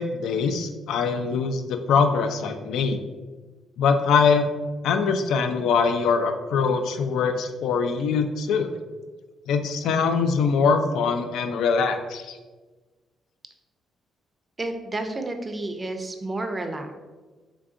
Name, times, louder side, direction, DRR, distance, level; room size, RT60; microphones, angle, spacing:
voice 1, 0.0-3.0 3.8-4.5 4.8-8.7 9.5-12.4, left 5 dB, 80° left, 7 dB, 0.3 m, -23 dB
voice 2, 14.6-16.9, right 2 dB, 25° right, 6 dB, 0.5 m, -31 dB
3.8 x 3.4 x 2.5 m, 1.3 s
cardioid pair, 90°, 0 cm